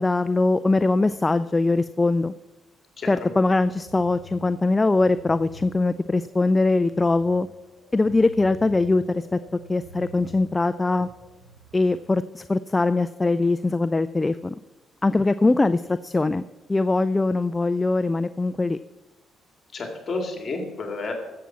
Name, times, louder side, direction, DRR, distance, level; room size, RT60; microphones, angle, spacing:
voice 1, 0.0-2.3 3.1-7.5 7.9-9.4 9.7-11.1 11.7-14.6 15.0-16.4 16.7-18.8, left 3 dB, 20° left, 12 dB, 0.4 m, -22 dB
voice 2, 3.0-3.3 19.7-21.1, left 3 dB, 45° left, 3 dB, 2.3 m, -31 dB
sound 1, 3.1-11.8, equal, 75° right, 3.4 m, -47 dB
15.5 x 7.6 x 5.7 m, 1.1 s
cardioid pair, 90°, 0 cm